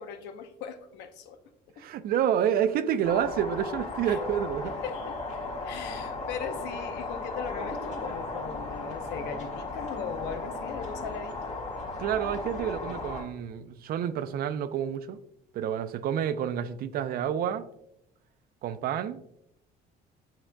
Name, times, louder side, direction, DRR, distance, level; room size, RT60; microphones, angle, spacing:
voice 1, 0.0-1.4 4.0-4.2 4.8-5.2 5.6-11.6, left 7 dB, 85° left, 0.7 m, -39 dB
voice 2, 1.8-4.7 12.0-15.2 15.5-17.7 18.6-19.2, right 9 dB, 60° right, 0.5 m, -29 dB
sound 1, 3.0-13.2, left 3 dB, 45° left, 1.5 m, -36 dB
8.9 x 4.8 x 2.2 m
cardioid pair, 110°, 17 cm